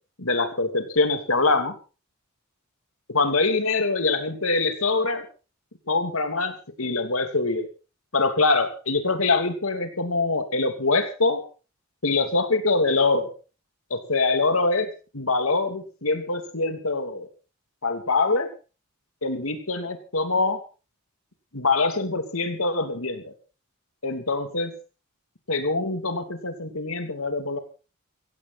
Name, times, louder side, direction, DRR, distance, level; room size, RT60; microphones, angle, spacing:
voice 1, 0.2-1.7 3.1-5.3 5.9-7.7 8.1-11.4 12.0-13.3 13.9-17.3 17.8-18.5 19.2-20.6 21.5-23.3 24.0-24.7 25.5-27.6, left 3 dB, 80° left, 7 dB, 2.9 m, -24 dB
16.5 x 16.0 x 4.2 m, 0.35 s
head